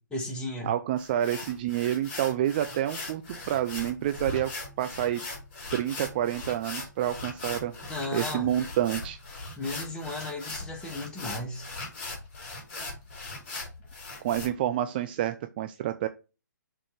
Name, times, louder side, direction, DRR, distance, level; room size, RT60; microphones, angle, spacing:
voice 1, 0.1-0.7 7.9-8.5 9.6-11.7, left 2 dB, 10° left, 1.4 m, -35 dB
voice 2, 0.6-4.5 4.8-5.2 5.7-7.7 8.1-9.2 14.2-16.1, right 11 dB, 30° right, 0.4 m, -28 dB
sound 1, 1.0-14.5, left 3 dB, 40° left, 2.8 m, -39 dB
6.4 x 3.7 x 4.6 m
figure-of-eight pair, 130°, 10 cm